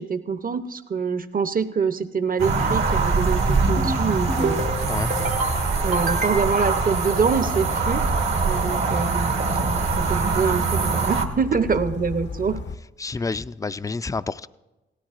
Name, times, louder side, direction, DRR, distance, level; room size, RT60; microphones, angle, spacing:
voice 1, 0.0-4.9 5.8-8.0 8.4-9.3 9.6-12.6, right 5 dB, 40° right, 11 dB, 0.8 m, -25 dB
sound 1, 2.4-11.3, right 4 dB, 70° right, 1.3 m, -23 dB
Bird vocalization bird call bird song, 2.6-12.8, left 4 dB, 60° left, 0.7 m, -34 dB
sound 2, 3.5-3.9 4.3-4.7 5.1-5.5 5.9-6.7, right 2 dB, 85° right, 2.0 m, -27 dB
voice 2, 13.0-14.5, left 4 dB, 15° left, 15 dB, 0.4 m, -29 dB
17.5 x 13.0 x 2.5 m, 1.1 s
supercardioid pair, 45°, 21 cm